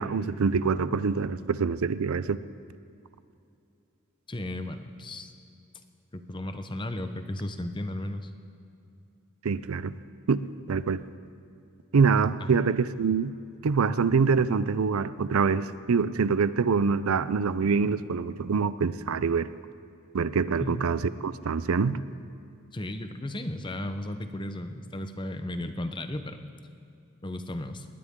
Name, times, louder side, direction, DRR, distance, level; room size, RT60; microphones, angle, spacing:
voice 1, 0.0-2.4 9.4-9.9 10.3-11.0 11.9-13.3 13.6-19.5 20.1-22.0, right 5 dB, 90° right, 15 dB, 0.5 m, -25 dB
voice 2, 4.3-5.3 6.1-8.3 12.4-12.6 20.6-21.0 22.7-26.4 27.2-27.9, left 1 dB, 20° left, 8 dB, 0.8 m, -35 dB
19.5 x 19.0 x 3.7 m, 2.5 s
head